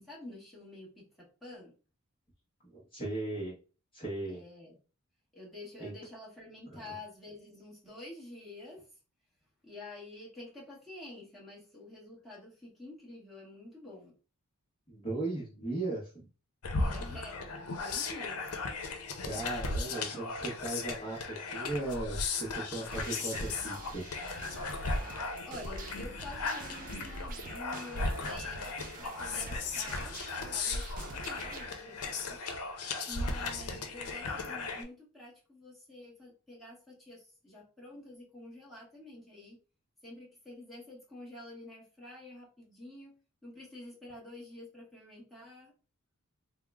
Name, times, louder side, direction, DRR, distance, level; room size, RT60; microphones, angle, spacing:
voice 1, 0.0-1.7 4.3-4.8 5.3-8.9 9.6-14.1 16.7-17.5 17.8-18.4 25.4-28.7 29.0-30.2 30.5-32.4 33.1-39.6 40.0-43.1 43.4-45.7, left 2 dB, ahead, -5 dB, 1.0 m, -48 dB
voice 2, 2.6-3.5 3.9-4.4 5.8-5.9 6.7-6.9 14.9-16.2 19.2-24.1, right 2 dB, 25° left, -5 dB, 0.8 m, -37 dB
sound 1, 16.6-34.8, left 3 dB, 80° left, 0.6 m, -36 dB
sound 2, 22.9-31.7, right 4 dB, 40° right, 0.5 m, -47 dB
3.5 x 2.0 x 3.4 m, 0.35 s
head